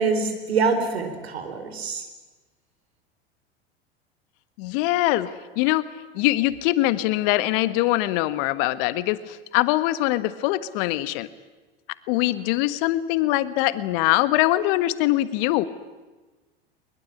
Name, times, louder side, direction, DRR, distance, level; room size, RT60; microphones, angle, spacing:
voice 1, 0.0-2.0, right 4 dB, 80° right, 7 dB, 4.3 m, -25 dB
voice 2, 4.6-5.9 6.1-11.3 12.1-15.7, left 16 dB, 60° left, 14 dB, 1.5 m, -23 dB
22.0 x 21.5 x 9.9 m, 1.2 s
hypercardioid pair, 80°, 31 cm